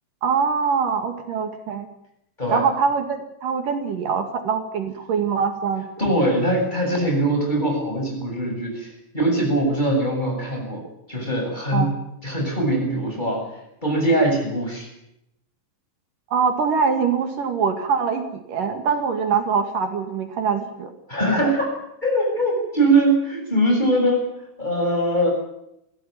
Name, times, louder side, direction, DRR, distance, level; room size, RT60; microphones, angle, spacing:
voice 1, 0.2-1.9 2.5-5.9 11.7-11.9 16.3-20.9, right 6 dB, 70° right, 6 dB, 3.7 m, -23 dB
voice 2, 6.0-10.8 11.1-11.9 12.2-13.4 13.8-14.9 21.1-21.7 22.0-24.3 24.6-25.3, right 1 dB, 10° left, 1 dB, 8.0 m, -21 dB
22.5 x 16.5 x 9.4 m, 0.80 s
omnidirectional pair, 4.0 m